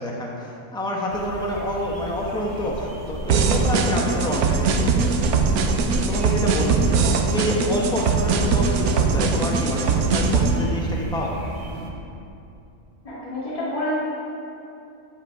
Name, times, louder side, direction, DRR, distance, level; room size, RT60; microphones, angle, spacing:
voice 1, 0.0-5.2 6.1-7.0 7.3-11.3, equal, 5° left, -2 dB, 0.9 m, -27 dB
sound 1, 1.1-11.9, right 1 dB, 40° right, 1.0 m, -34 dB
sound 2, 3.3-10.6, right 5 dB, 85° right, 1.2 m, -21 dB
voice 2, 13.0-13.9, left 1 dB, 25° left, -10 dB, 2.3 m, -29 dB
11.0 x 5.7 x 4.8 m, 2.7 s
omnidirectional pair, 1.5 m